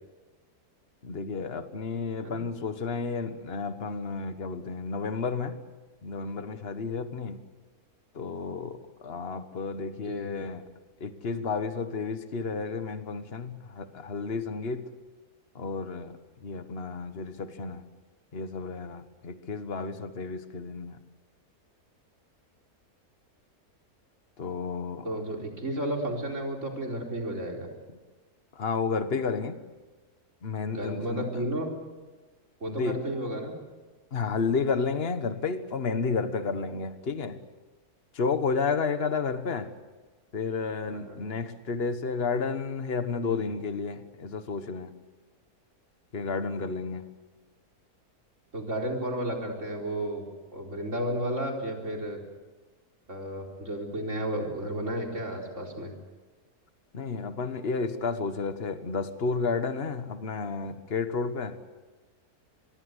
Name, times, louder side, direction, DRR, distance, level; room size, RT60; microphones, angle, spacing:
voice 1, 1.0-5.6 6.0-7.5 8.1-10.6 11.0-14.9 15.5-17.8 18.3-21.0 24.4-25.1 25.3-25.5 28.5-29.6 30.4-31.4 32.7-33.1 34.1-37.4 38.1-39.7 40.3-44.9 46.1-47.0 56.9-61.6, left 4 dB, 40° left, 1.6 m, -31 dB
voice 2, 25.0-27.7 30.7-31.7 32.6-33.6 40.9-41.2 43.2-43.4 48.5-50.3 50.5-52.2 53.1-55.9, right 1 dB, 50° right, 4.7 m, -32 dB
25.0 x 23.0 x 8.2 m
omnidirectional pair, 1.6 m